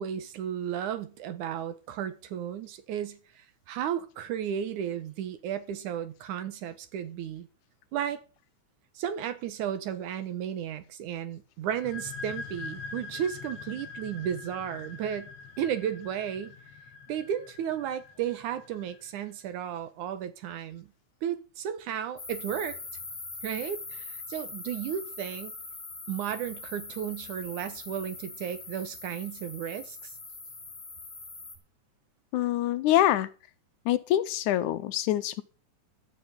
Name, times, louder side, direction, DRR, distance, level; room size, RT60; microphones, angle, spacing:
voice 1, 0.0-7.5 7.9-8.2 9.0-15.3 15.6-16.6 17.1-20.9 21.2-22.8 23.4-25.5 26.1-30.1, right 9 dB, 75° right, 2.6 m, -34 dB
sound 1, 11.7-19.2, left 4 dB, 65° left, 2.6 m, -43 dB
sound 2, 22.2-31.6, left 3 dB, 30° left, 3.2 m, -42 dB
voice 2, 32.3-33.3 33.9-35.4, left 13 dB, 80° left, 2.2 m, -25 dB
12.5 x 6.0 x 8.7 m
omnidirectional pair, 3.6 m